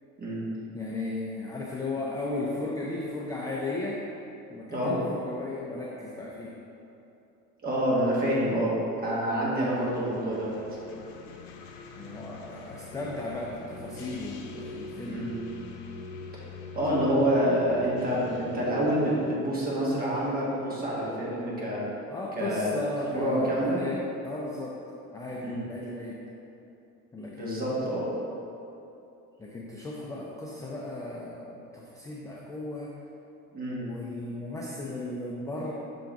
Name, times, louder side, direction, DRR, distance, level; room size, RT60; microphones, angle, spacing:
voice 1, 0.7-4.0 4.5-6.5 11.9-15.2 22.1-24.8 25.1-26.2 27.1-28.0 29.4-32.9 33.8-35.7, left 2 dB, 10° left, -4 dB, 0.4 m, -35 dB
voice 2, 7.6-10.5 15.1-15.3 16.7-21.8 22.4-22.7 23.1-23.8 25.4-25.6 27.4-28.1 33.5-33.8, equal, 25° right, -6 dB, 1.5 m, -27 dB
sound 1, 9.7-19.4, left 4 dB, 80° left, 0.7 m, -44 dB
5.8 x 3.9 x 4.6 m, 2.8 s
cardioid pair, 140°, 34 cm